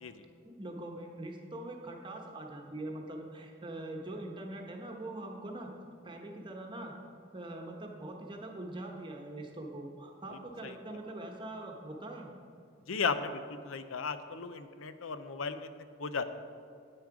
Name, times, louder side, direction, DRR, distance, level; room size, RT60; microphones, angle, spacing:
voice 1, 0.4-5.7 6.0-6.9 7.3-12.3, right 1 dB, 25° right, 1 dB, 1.0 m, -43 dB
voice 2, 10.6-11.0 12.9-16.2, left 5 dB, 85° left, 11 dB, 0.6 m, -36 dB
9.6 x 8.9 x 5.0 m, 2.4 s
head